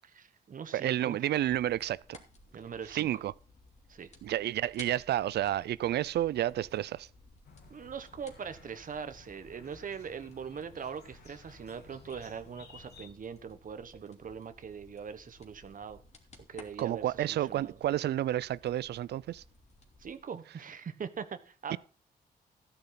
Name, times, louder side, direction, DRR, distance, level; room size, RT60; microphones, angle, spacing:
voice 1, 0.1-1.2 2.5-3.2 3.9-4.1 7.7-16.0 16.5-17.8 20.0-21.8, right 6 dB, 55° right, 1.3 m, -42 dB
voice 2, 0.7-2.2 2.9-3.3 4.2-7.1 16.8-19.4 21.7-21.8, right 12 dB, 80° right, 0.5 m, -30 dB
sound 1, 1.4-20.2, left 2 dB, 40° left, 2.8 m, -58 dB
sound 2, 7.4-13.1, left 5 dB, 75° left, 2.9 m, -56 dB
13.0 x 10.0 x 4.0 m
cardioid pair, 85°, 17 cm